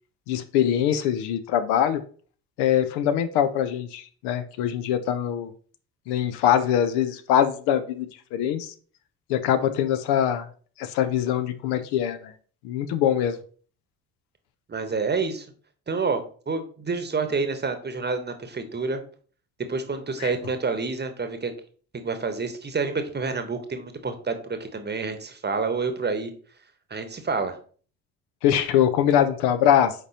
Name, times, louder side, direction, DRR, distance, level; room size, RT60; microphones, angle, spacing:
voice 1, 0.3-2.0 2.6-5.5 6.1-8.7 9.3-10.5 10.8-12.3 12.6-13.4 20.2-20.3 28.4-29.9, left 10 dB, 55° left, 10 dB, 0.8 m, -23 dB
voice 2, 14.7-15.4 15.9-16.2 16.5-19.0 19.7-21.5 21.9-26.3 26.9-27.6, right 4 dB, 20° right, 8 dB, 1.2 m, -28 dB
8.0 x 5.3 x 2.9 m, 0.43 s
figure-of-eight pair, 50°, 47 cm